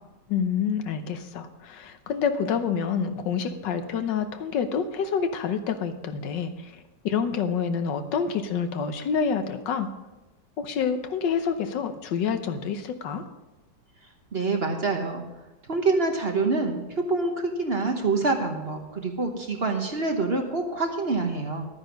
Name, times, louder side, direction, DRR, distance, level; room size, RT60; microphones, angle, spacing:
voice 1, 0.3-6.7 7.0-9.9 10.6-13.2, left 6 dB, 80° left, 8 dB, 1.6 m, -27 dB
voice 2, 14.3-15.2 15.7-21.7, right 3 dB, 40° right, 3 dB, 1.1 m, -26 dB
12.5 x 9.4 x 5.2 m, 1.1 s
omnidirectional pair, 1.9 m